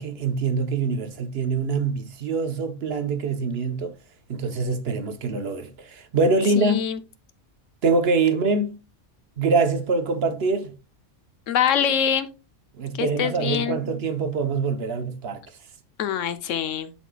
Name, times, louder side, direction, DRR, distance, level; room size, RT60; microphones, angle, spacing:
voice 1, 0.0-3.9 4.3-6.8 7.8-8.8 9.4-10.7 12.8-15.4, right 4 dB, 55° right, 1.1 m, -24 dB
voice 2, 6.6-7.0 11.5-12.3 13.0-13.8 16.0-16.9, left 9 dB, 80° left, 1.1 m, -24 dB
11.0 x 4.2 x 2.3 m
omnidirectional pair, 1.3 m